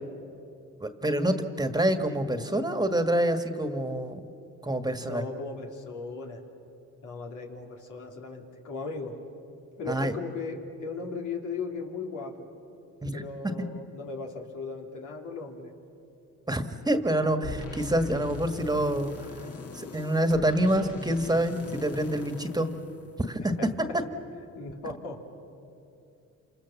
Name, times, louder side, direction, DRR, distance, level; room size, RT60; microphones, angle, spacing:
voice 1, 0.8-4.2 4.6-5.2 9.9-10.1 13.0-13.2 16.5-19.5 19.7-22.7 23.2-23.7, right 1 dB, 15° right, 7 dB, 1.7 m, -27 dB
voice 2, 5.0-6.4 7.0-9.2 9.8-12.5 13.1-15.7 17.1-17.3 23.6-23.7 24.5-25.2, left 4 dB, 80° left, 1 dB, 3.2 m, -37 dB
sound 1, 17.4-23.6, left 4 dB, 50° left, 2.5 m, -41 dB
28.0 x 26.5 x 7.2 m, 2.7 s
cardioid pair, 90°, 30 cm